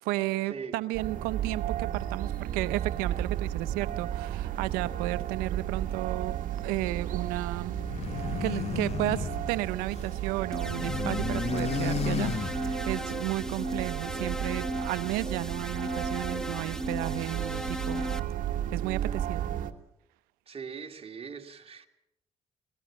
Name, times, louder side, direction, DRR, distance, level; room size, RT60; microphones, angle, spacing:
voice 1, 0.0-6.3 6.6-7.8 8.2-18.0 18.7-19.5, right 17 dB, 90° right, 0.8 m, -33 dB
sound 1, 0.9-19.7, right 11 dB, 65° right, 1.6 m, -34 dB
sound 2, 7.8-10.2 10.5-13.0, left 7 dB, 45° left, 1.1 m, -33 dB
sound 3, 10.5-18.2, equal, 5° left, 1.2 m, -36 dB
voice 2, 20.5-21.9, right 6 dB, 40° right, 2.5 m, -41 dB
23.0 x 19.5 x 7.4 m
supercardioid pair, 65°, 15 cm